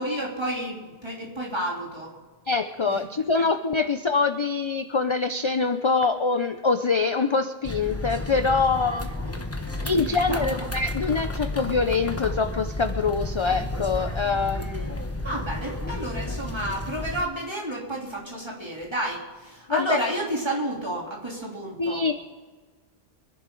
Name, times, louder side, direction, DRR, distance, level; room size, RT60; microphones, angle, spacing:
voice 1, 0.0-2.2 2.9-3.0 3.3-3.4 9.1-10.7 15.2-22.1, right 1 dB, 25° right, -3 dB, 3.5 m, -31 dB
voice 2, 2.5-9.1 9.8-14.9 19.7-20.0 21.8-22.1, left 4 dB, 35° left, 8 dB, 0.6 m, -24 dB
sound 1, 7.6-17.2, left 2 dB, 15° left, 1.0 m, -32 dB
24.5 x 11.0 x 3.9 m, 1.3 s
omnidirectional pair, 1.0 m